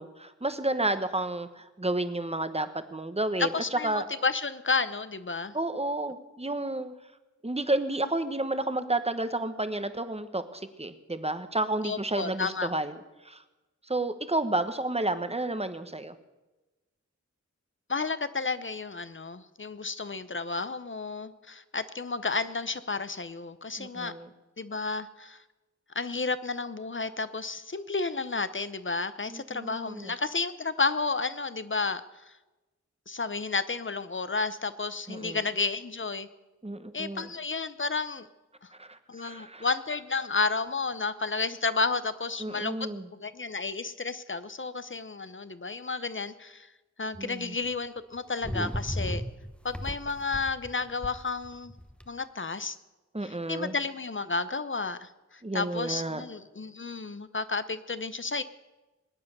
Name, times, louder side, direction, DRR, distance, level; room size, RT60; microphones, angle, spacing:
voice 1, 0.0-4.1 5.5-6.9 7.4-13.0 13.2-13.4 13.9-16.1 23.8-24.3 29.3-30.1 35.1-35.4 36.6-37.3 38.8-39.7 42.4-43.1 47.2-47.6 53.1-53.7 55.4-56.2, right 2 dB, 20° right, 10 dB, 1.1 m, -31 dB
voice 2, 3.4-5.5 11.8-12.7 17.9-24.1 24.6-25.4 25.9-32.3 33.1-36.3 36.9-38.3 39.1-42.9 43.2-46.7 47.0-49.2 49.6-51.7 52.1-52.8 53.2-58.4, left 4 dB, 45° left, 13 dB, 0.8 m, -32 dB
sound 1, 47.1-47.2 48.4-52.1, equal, 5° left, 1.0 m, -35 dB
21.0 x 9.5 x 6.8 m, 1.1 s
wide cardioid pair, 60°, 29 cm